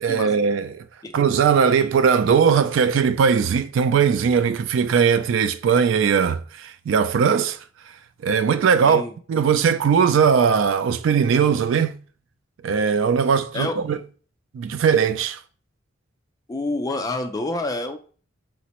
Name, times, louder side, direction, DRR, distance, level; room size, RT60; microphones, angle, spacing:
voice 1, 0.0-0.8 1.1-7.6 8.2-11.9 12.6-14.0 14.5-15.4, right 6 dB, 80° right, 0.3 m, -19 dB
voice 2, 8.8-9.1 13.2-13.3 13.5-13.8 16.5-18.0, left 2 dB, 20° left, 0.3 m, -28 dB
5.0 x 2.0 x 2.9 m
head